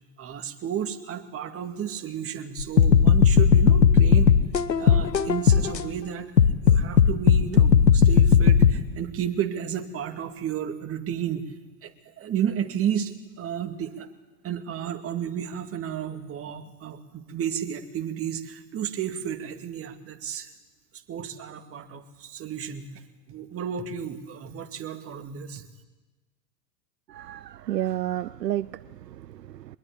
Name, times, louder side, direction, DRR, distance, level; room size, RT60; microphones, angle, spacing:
voice 1, 0.2-4.3 4.8-6.3 6.6-11.5 11.8-14.1 14.4-20.5 21.1-23.0 23.3-25.6, right 9 dB, 25° right, 6 dB, 2.2 m, -32 dB
sound 1, 2.6-5.8 6.4-8.7, left 7 dB, 85° left, 1.2 m, -17 dB
voice 2, 27.1-29.8, right 13 dB, 75° right, 17 dB, 0.7 m, -31 dB
23.5 x 21.0 x 8.7 m, 1.2 s
figure-of-eight pair, 95°, 50 cm